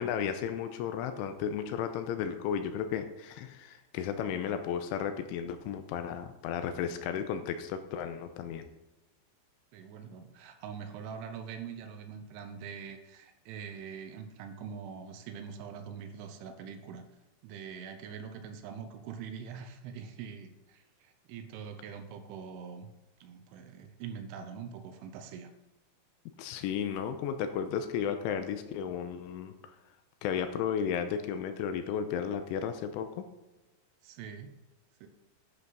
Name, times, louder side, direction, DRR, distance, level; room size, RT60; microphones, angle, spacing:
voice 1, 0.0-8.7 26.4-29.5 30.2-33.3, left 8 dB, 85° left, 8 dB, 3.1 m, -34 dB
voice 2, 9.7-17.1 17.4-22.9 23.2-25.5 34.0-34.6 35.0-35.1, right 7 dB, 80° right, 7 dB, 3.3 m, -43 dB
11.0 x 10.0 x 4.0 m, 1.1 s
omnidirectional pair, 5.8 m